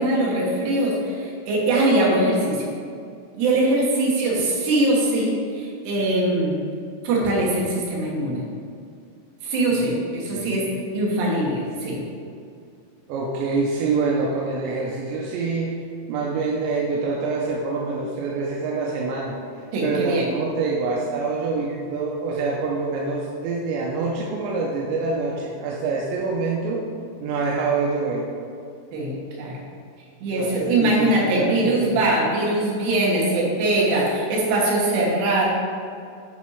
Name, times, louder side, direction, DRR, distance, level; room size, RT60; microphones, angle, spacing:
voice 1, 0.0-2.7 3.4-6.6 7.0-8.4 9.4-12.0 19.7-20.3 28.9-29.6 30.2-35.5, right 1 dB, 70° right, -4 dB, 3.6 m, -22 dB
voice 2, 10.3-10.7 13.1-15.8 16.1-19.4 19.8-26.8 27.2-28.3 30.2-32.0, right 4 dB, 85° right, -2 dB, 3.0 m, -26 dB
10.5 x 4.4 x 4.9 m, 2.4 s
omnidirectional pair, 5.1 m